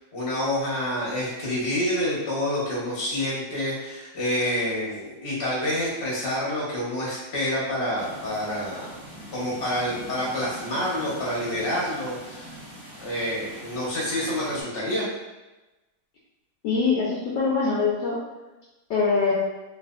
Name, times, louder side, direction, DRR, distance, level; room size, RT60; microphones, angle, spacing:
voice 1, 0.0-9.0 9.3-12.5 13.0-15.1, left 1 dB, 40° left, -6 dB, 0.9 m, -28 dB
sound 1, 7.9-14.6, equal, 20° right, 0.6 m, -43 dB
voice 2, 16.6-18.2 18.9-19.3, left 4 dB, 75° left, -6 dB, 1.1 m, -23 dB
3.3 x 2.9 x 2.4 m, 1.1 s
omnidirectional pair, 2.3 m